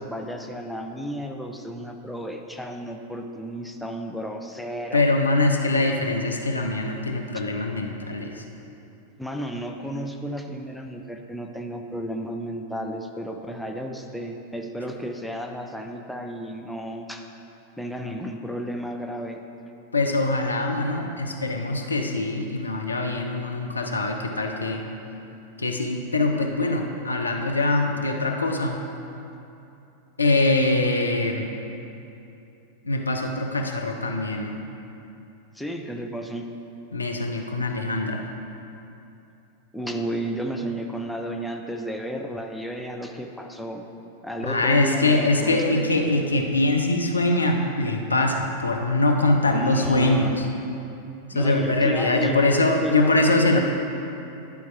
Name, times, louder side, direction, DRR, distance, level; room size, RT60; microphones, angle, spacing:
voice 1, 0.0-5.0 9.2-17.3 17.8-19.4 35.5-36.5 39.7-43.9 44.2-45.9 49.5-50.4 51.3-53.6, equal, ahead, 2 dB, 0.6 m, -33 dB
voice 2, 4.9-8.4 19.9-24.9 25.6-28.8 30.2-31.5 32.8-34.6 36.9-38.2 44.5-50.4 51.3-53.6, left 2 dB, 80° left, 2 dB, 0.6 m, -23 dB
10.5 x 4.6 x 4.5 m, 2.8 s
figure-of-eight pair, 90°, 0 cm